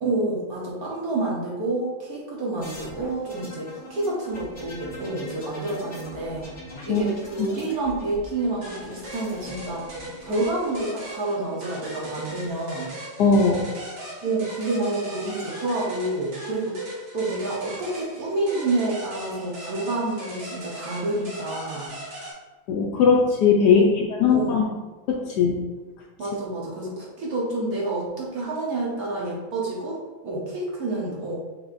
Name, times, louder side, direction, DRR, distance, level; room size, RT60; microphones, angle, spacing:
voice 1, 0.0-6.5 6.9-9.8 10.2-12.9 14.2-16.8 17.1-22.0 23.7-24.0 24.3-24.6 26.2-31.4, right 2 dB, 55° right, -4 dB, 1.3 m, -28 dB
sound 1, 2.6-11.2 12.3-12.9, left 1 dB, 40° left, 1.4 m, -42 dB
sound 2, 8.6-22.3, right 1 dB, 70° right, 2.1 m, -39 dB
voice 2, 13.2-13.7 22.7-23.8 24.2-24.7 25.1-25.6, left 5 dB, 75° left, 0 dB, 1.0 m, -19 dB
6.3 x 3.3 x 2.5 m, 1.2 s
omnidirectional pair, 2.1 m